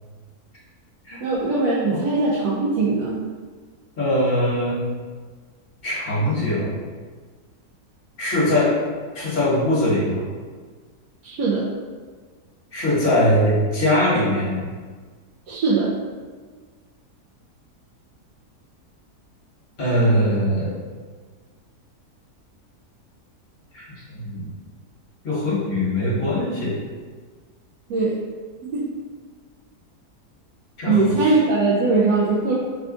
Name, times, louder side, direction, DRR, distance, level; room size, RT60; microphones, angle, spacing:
voice 1, 1.2-3.2 11.2-11.7 15.5-15.9 27.9-28.1 28.7-28.8 30.9-32.5, right 3 dB, 80° right, -7 dB, 1.2 m, -20 dB
voice 2, 4.0-4.8 5.8-6.7 8.2-8.7 9.1-10.2 12.7-14.7 19.8-20.7 23.7-23.8 24.2-24.5 25.2-26.7 30.8-31.3, left 1 dB, 40° left, -9 dB, 1.2 m, -21 dB
3.6 x 2.3 x 3.6 m, 1.5 s
omnidirectional pair, 1.7 m